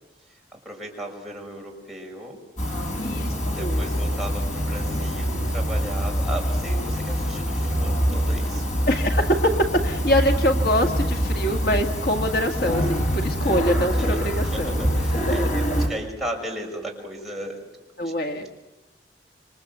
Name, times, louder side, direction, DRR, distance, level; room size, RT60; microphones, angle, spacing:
voice 1, 0.3-2.4 3.5-8.6 13.4-17.6 18.0-18.5, right 1 dB, ahead, -2 dB, 6.1 m, -36 dB
sound 1, 2.6-15.9, equal, 40° left, 6.3 m, -25 dB
voice 2, 3.0-3.3 3.6-3.9 8.9-14.8 18.0-18.5, equal, 60° left, 4 dB, 1.8 m, -24 dB
27.5 x 25.0 x 8.0 m, 0.99 s
head